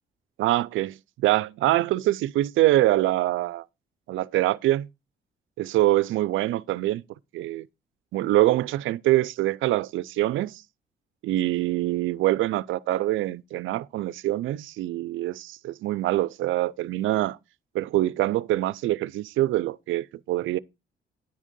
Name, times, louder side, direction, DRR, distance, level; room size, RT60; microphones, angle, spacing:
voice 1, 0.4-3.6 4.1-4.9 5.6-7.0 7.3-7.7 8.1-10.6 11.2-17.4 17.7-20.6, right 15 dB, 80° right, 0.5 m, -24 dB
10.5 x 3.6 x 6.7 m
cardioid pair, 90°, 20 cm